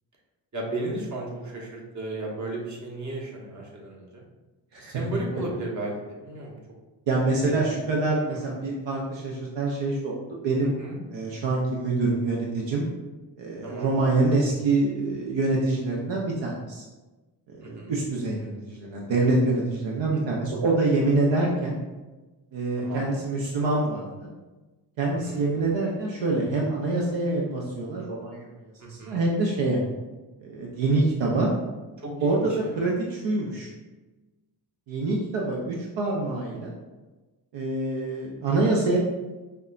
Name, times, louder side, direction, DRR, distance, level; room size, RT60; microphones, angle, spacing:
voice 1, 0.5-4.2 4.8-6.6 7.4-7.8 8.2-8.5 10.8-11.0 13.6-13.9 17.6-17.9 20.1-20.2 22.8-23.1 25.2-25.5 28.8-29.2 32.0-32.7, right 2 dB, 40° right, -2 dB, 1.1 m, -34 dB
voice 2, 7.1-10.2 10.4-10.7 11.1-12.9 13.4-16.8 17.5-21.7 22.5-24.3 25.0-28.5 28.9-29.8 30.4-31.5 32.2-33.7 34.9-36.7 37.5-39.0, right 2 dB, 75° right, -2 dB, 0.7 m, -25 dB
5.2 x 2.2 x 2.4 m, 1.2 s
cardioid pair, 55°, 44 cm